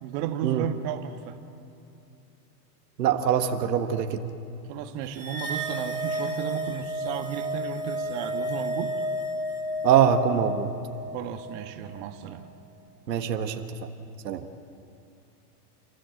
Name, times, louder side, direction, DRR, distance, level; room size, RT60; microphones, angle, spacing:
voice 1, 0.0-1.4 4.7-9.0 11.1-12.5, right 10 dB, 45° right, 6 dB, 1.7 m, -34 dB
voice 2, 3.0-4.2 9.8-10.7 13.1-13.5 14.2-14.4, right 9 dB, 90° right, 6 dB, 1.6 m, -23 dB
sound 1, 5.1-11.7, equal, 10° right, 4.4 m, -32 dB
29.5 x 15.0 x 7.9 m, 2.7 s
supercardioid pair, 135°, 48 cm